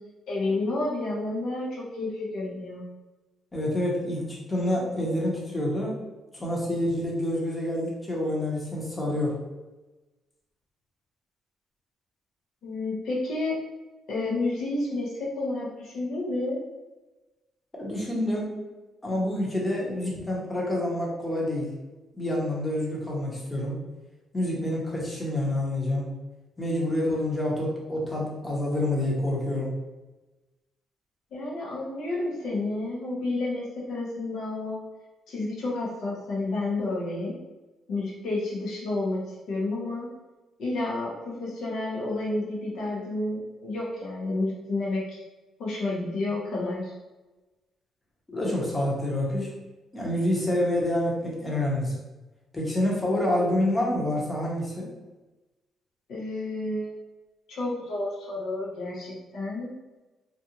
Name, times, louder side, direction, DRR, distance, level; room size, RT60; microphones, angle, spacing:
voice 1, 0.3-2.8 12.6-13.6 14.1-16.6 31.3-34.8 35.3-37.4 37.9-39.2 39.5-40.1 40.6-45.2 45.6-46.9 56.1-57.0 57.5-59.7, left 2 dB, 75° left, -5 dB, 0.8 m, -30 dB
voice 2, 3.5-5.9 6.3-9.4 17.8-18.5 19.0-21.7 22.1-23.8 24.3-26.1 26.6-29.7 48.3-49.5 49.9-51.9 52.5-54.9, left 1 dB, 20° left, -3 dB, 0.9 m, -27 dB
2.5 x 2.3 x 2.8 m, 1.1 s
cardioid pair, 90°, 0 cm